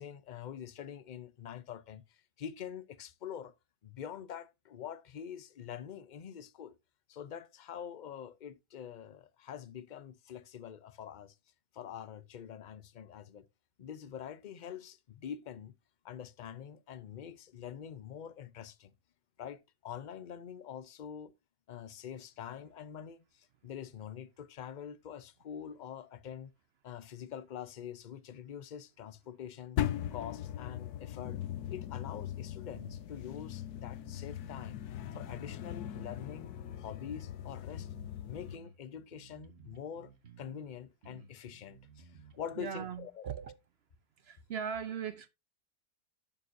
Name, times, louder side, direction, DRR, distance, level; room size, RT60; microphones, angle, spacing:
voice 1, 0.0-3.5 3.8-6.7 7.1-11.3 11.7-13.5 13.8-15.7 16.0-18.9 19.4-21.3 21.7-26.5 26.8-29.8 30.1-31.4 31.7-34.8 35.1-36.5 36.8-37.9 38.3-40.1 40.4-43.2, left 8 dB, 55° left, 0.5 m, -45 dB
sound 1, 29.8-38.6, left 11 dB, 85° left, 1.2 m, -39 dB
sound 2, 32.7-33.0 33.4-35.6 35.9-38.1 38.5-40.7 41.0-43.0, right 4 dB, 45° right, 1.4 m, -55 dB
voice 2, 42.6-43.6 44.2-45.3, right 7 dB, 65° right, 0.6 m, -39 dB
11.0 x 7.0 x 2.6 m
omnidirectional pair, 1.6 m